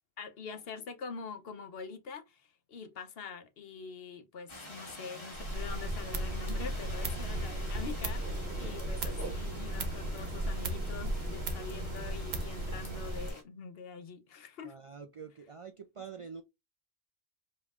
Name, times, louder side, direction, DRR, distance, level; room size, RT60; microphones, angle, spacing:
voice 1, 0.2-14.7, left 5 dB, 70° left, 1.0 m, -45 dB
sound 1, 4.5-13.4, left 1 dB, 30° left, 1.3 m, -48 dB
sound 2, 5.3-13.3, right 1 dB, 80° right, 1.2 m, -35 dB
voice 2, 14.6-16.4, right 6 dB, 50° right, 0.4 m, -46 dB
5.3 x 3.1 x 2.4 m
omnidirectional pair, 1.0 m